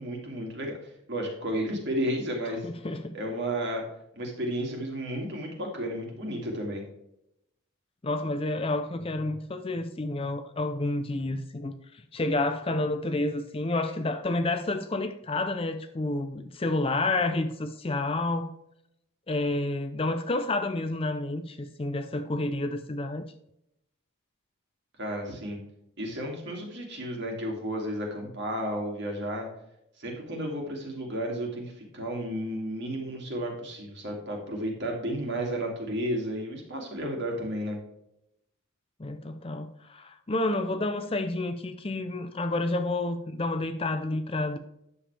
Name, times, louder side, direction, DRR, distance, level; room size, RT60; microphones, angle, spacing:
voice 1, 0.0-2.7 3.1-3.8 4.1-6.8 25.0-25.6 26.0-29.5 30.0-37.8, equal, 50° right, 2.6 m, -32 dB
voice 2, 2.5-3.2 8.0-11.7 12.1-18.5 19.3-23.3 39.0-44.6, left 2 dB, 25° left, 0.5 m, -29 dB
10.0 x 7.0 x 3.4 m
head